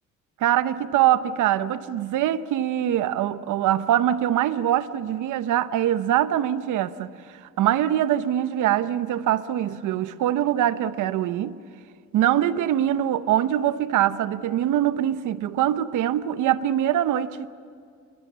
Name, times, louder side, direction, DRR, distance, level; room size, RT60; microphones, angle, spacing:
voice 1, 0.4-7.1 7.6-11.6 12.1-17.5, right 11 dB, 85° right, 0.9 m, -23 dB
28.0 x 22.0 x 7.4 m
cardioid pair, 90°, 30 cm